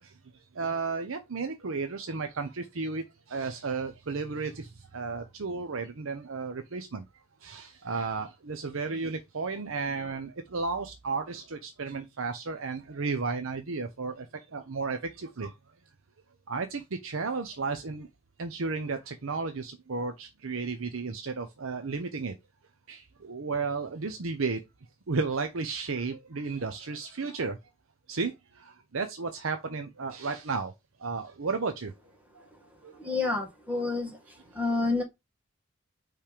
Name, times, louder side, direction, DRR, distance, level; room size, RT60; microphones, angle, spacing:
voice 1, 0.5-7.0 7.4-15.5 16.5-18.1 18.4-22.3 22.9-24.6 25.1-27.6 28.1-30.7 31.0-31.9 32.3-32.4 32.8-33.0, right 4 dB, 70° right, 0.8 m, -33 dB
voice 2, 32.9-35.0, left 3 dB, 10° right, 1.9 m, -30 dB
5.7 x 3.3 x 5.0 m
head